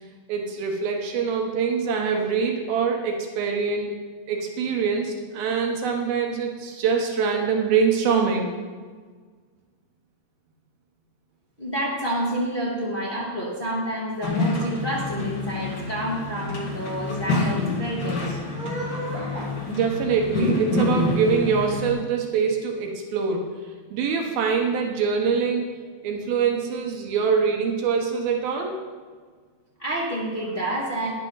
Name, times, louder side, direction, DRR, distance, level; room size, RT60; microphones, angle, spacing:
voice 1, 0.3-3.9 4.3-8.5 19.7-23.5 23.9-25.7 26.0-28.8, right 6 dB, 80° right, 2 dB, 2.9 m, -24 dB
voice 2, 11.6-19.5 29.8-31.1, right 1 dB, 25° left, -6 dB, 1.3 m, -29 dB
sound 1, 14.2-21.9, left 2 dB, 45° left, 1.4 m, -27 dB
12.0 x 10.5 x 4.0 m, 1.5 s
omnidirectional pair, 4.3 m